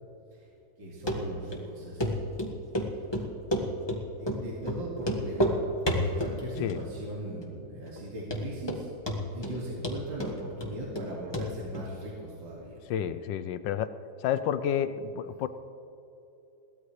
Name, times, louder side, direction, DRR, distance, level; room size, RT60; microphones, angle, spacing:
voice 1, 0.8-2.2 4.2-8.9 9.3-12.8, right 1 dB, 70° right, -4 dB, 2.9 m, -38 dB
Run, 1.1-1.2 1.5-1.6 2.0-2.1 2.4-2.9 3.1-4.0 4.3-4.4 4.7-4.8 5.0-5.6 5.9-6.4 6.7-7.1 7.4-7.5 8.0-8.1 8.3-8.8 9.1-9.6 9.8-11.1 11.3-11.5 11.7-11.8, equal, 15° left, 1.4 m, -29 dB
voice 2, 12.9-13.9 14.2-15.5, left 9 dB, 75° left, 12 dB, 1.3 m, -30 dB
22.0 x 16.5 x 3.2 m, 2.9 s
omnidirectional pair, 2.1 m